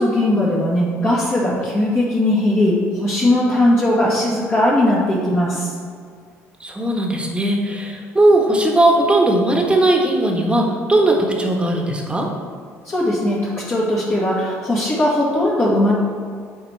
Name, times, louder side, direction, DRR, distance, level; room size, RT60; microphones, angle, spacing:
voice 1, 0.0-5.7 12.8-15.9, left 1 dB, 35° left, -7 dB, 1.6 m, -18 dB
voice 2, 6.6-12.3, right 1 dB, 15° right, 0 dB, 1.4 m, -18 dB
9.4 x 4.3 x 3.3 m, 2.1 s
hypercardioid pair, 55°, 7 cm